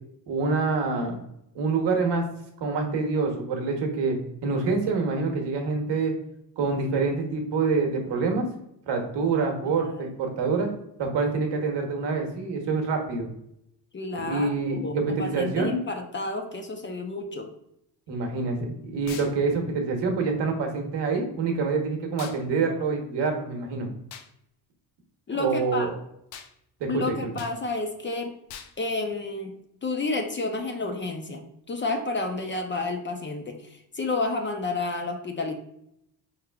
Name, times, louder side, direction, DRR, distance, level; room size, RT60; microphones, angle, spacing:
voice 1, 0.3-1.2 1.5-2.3 2.6-6.1 6.6-8.5 8.9-10.7 11.0-13.3 14.1-15.8 18.1-23.9 25.4-25.9 26.8-27.2, right 4 dB, 70° right, 2 dB, 1.1 m, -26 dB
voice 2, 9.6-10.1 13.9-17.5 25.3-25.9 26.9-28.3 28.8-29.5 29.8-35.5, left 3 dB, 25° left, 4 dB, 0.6 m, -31 dB
sound 1, 19.1-19.4 22.2-22.4 24.1-24.3 26.3-26.5 27.4-27.6 28.5-28.8, left 8 dB, 85° left, 0.6 m, -42 dB
4.7 x 3.2 x 2.3 m, 0.77 s
supercardioid pair, 75°, 45 cm